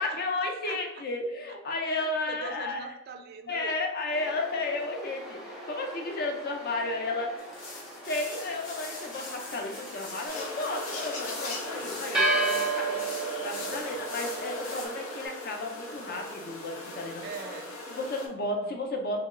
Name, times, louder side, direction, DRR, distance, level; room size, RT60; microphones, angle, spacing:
voice 1, 0.0-2.9 3.5-7.3 8.1-17.2 17.9-19.2, left 2 dB, 45° left, 2 dB, 0.6 m, -33 dB
voice 2, 0.7-1.0 1.8-3.8 11.6-11.9 12.7-12.8 13.5-13.9 17.2-17.8 18.4-18.8, right 5 dB, 45° right, 6 dB, 0.3 m, -43 dB
sound 1, 4.1-15.2, right 3 dB, 5° right, 0.7 m, -35 dB
sound 2, 7.4-14.9, left 3 dB, 65° left, 1.0 m, -43 dB
sound 3, 10.3-18.3, left 2 dB, 90° left, 0.8 m, -39 dB
3.0 x 2.8 x 3.7 m, 0.85 s
head